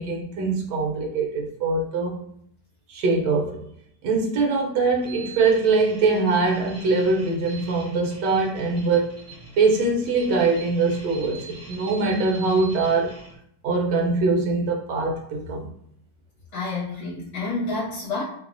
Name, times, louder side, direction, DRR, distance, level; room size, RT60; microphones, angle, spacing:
voice 1, 0.0-2.2 2.9-3.6 4.0-9.2 9.6-13.2 13.6-15.7, right 3 dB, 75° right, 0 dB, 1.1 m, -23 dB
sound 1, 4.9-13.4, right 3 dB, 15° right, 0.5 m, -44 dB
voice 2, 16.5-18.2, left 3 dB, 65° left, -7 dB, 1.2 m, -29 dB
3.0 x 2.0 x 2.5 m, 0.71 s
omnidirectional pair, 2.0 m